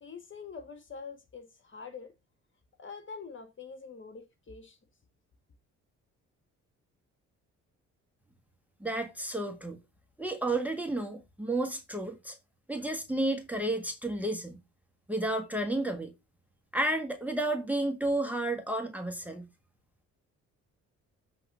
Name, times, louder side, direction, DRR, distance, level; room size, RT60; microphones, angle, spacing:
voice 1, 0.0-2.1 2.8-4.8, left 5 dB, 40° left, 2.1 m, -45 dB
voice 2, 8.8-9.8 10.2-12.4 12.7-14.6 15.1-16.1 16.7-19.5, right 1 dB, 5° right, 1.6 m, -31 dB
7.6 x 3.9 x 6.1 m
cardioid pair, 90°, 30 cm